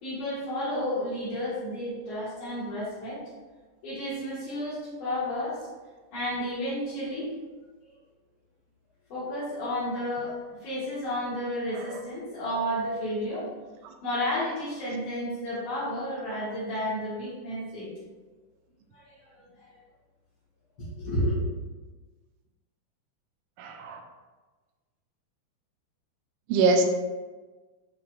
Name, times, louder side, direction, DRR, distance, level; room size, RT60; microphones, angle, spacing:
voice 1, 0.0-3.2 3.8-5.7 6.1-7.3 9.1-13.5 14.0-17.9 18.9-19.3 19.6-19.7 20.8-21.4, equal, 70° left, -12 dB, 3.3 m, -32 dB
voice 2, 23.6-24.0 26.5-26.8, right 3 dB, 80° right, 4 dB, 2.1 m, -23 dB
9.5 x 4.8 x 2.5 m, 1.3 s
omnidirectional pair, 3.7 m